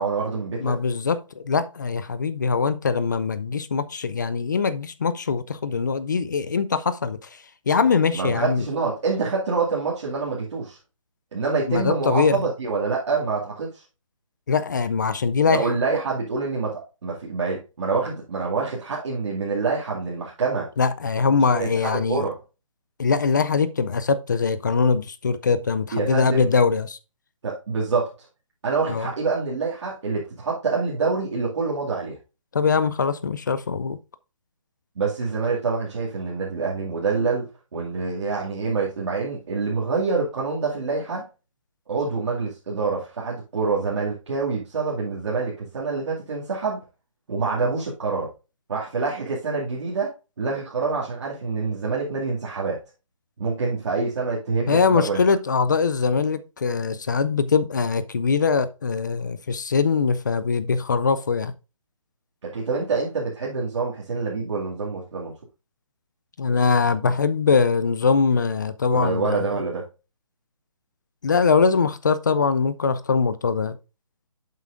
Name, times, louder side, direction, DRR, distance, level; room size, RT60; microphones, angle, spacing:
voice 1, 0.0-0.8 8.1-10.8 11.3-13.8 15.5-20.7 21.6-22.4 25.9-26.5 27.4-28.1 28.6-32.2 35.0-37.5 37.7-41.2 41.9-46.8 47.3-48.3 48.7-50.1 50.4-52.8 53.4-55.2 62.4-65.3 68.9-69.9, right 4 dB, 55° right, 2.2 m, -26 dB
voice 2, 0.6-7.2 7.7-8.6 11.7-12.4 14.5-15.6 20.8-22.2 23.0-27.0 28.9-29.1 32.5-34.0 54.7-61.5 66.4-69.4 71.2-73.8, left 5 dB, 35° left, 0.4 m, -22 dB
8.3 x 7.5 x 2.5 m
hypercardioid pair, 165°, 17 cm